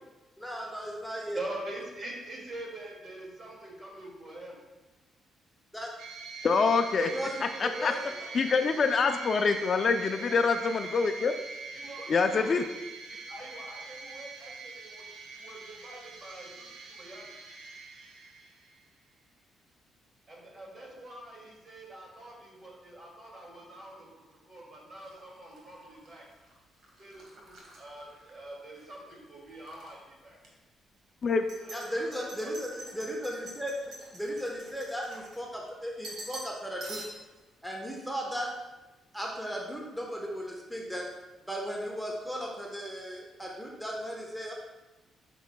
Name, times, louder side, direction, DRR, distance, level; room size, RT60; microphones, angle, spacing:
voice 1, 0.4-1.4 5.7-5.9 7.1-8.0 31.7-33.7 34.1-37.0 37.6-38.5 39.1-41.1 41.5-44.5, equal, ahead, -2 dB, 1.0 m, -36 dB
voice 2, 1.3-4.6 7.5-8.9 10.1-10.5 11.7-12.7 13.1-17.3 20.3-26.2 27.0-30.4 31.6-32.5, right 1 dB, 40° right, -2 dB, 2.2 m, -45 dB
sound 1, 6.0-18.8, right 3 dB, 85° right, 0.9 m, -43 dB
voice 3, 6.4-7.1 7.6-7.9 8.3-11.3 12.1-12.6 31.2-31.4, left 5 dB, 45° left, 7 dB, 0.4 m, -25 dB
sound 2, 25.0-28.9 29.3-29.9 30.4-30.5 31.3-35.7 36.0-36.5 36.8-37.4, right 1 dB, 65° right, 1.6 m, -47 dB
8.0 x 6.0 x 2.2 m, 1.1 s
cardioid pair, 90°, 0 cm